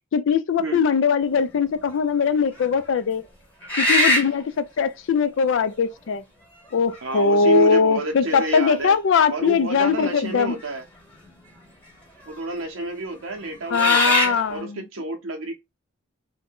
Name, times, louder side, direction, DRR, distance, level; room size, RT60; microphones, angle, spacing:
voice 1, 0.1-3.2 3.8-6.2 6.7-10.6 13.7-14.9, left 5 dB, 65° left, 0.3 m, -21 dB
sound 1, 1.5-2.0 2.6-2.7 3.6-4.4 5.7-5.8 6.7-7.2 7.6-7.7 8.3-9.0 10.6-10.7 11.0-11.6 12.3-12.4 13.4-14.4, left 1 dB, 10° left, 1.0 m, -22 dB
voice 2, 7.0-9.0 9.3-10.8 12.3-15.5, right 2 dB, 85° right, 0.6 m, -29 dB
2.5 x 2.1 x 3.4 m
head